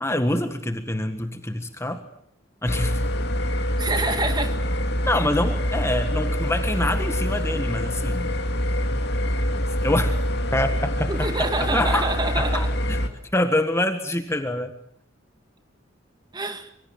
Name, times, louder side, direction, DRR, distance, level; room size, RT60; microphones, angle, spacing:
voice 1, 0.0-2.0 2.6-3.0 5.0-8.3 9.8-10.2 10.5-11.3 11.6-13.0 13.3-14.7, left 1 dB, 15° left, 7 dB, 1.6 m, -25 dB
sound 1, 2.7-13.1, equal, 55° left, 2.7 m, -25 dB
voice 2, 3.8-4.6 11.1-12.7 16.3-16.7, right 2 dB, 20° right, 7 dB, 2.2 m, -27 dB
26.0 x 24.0 x 7.8 m, 0.66 s
head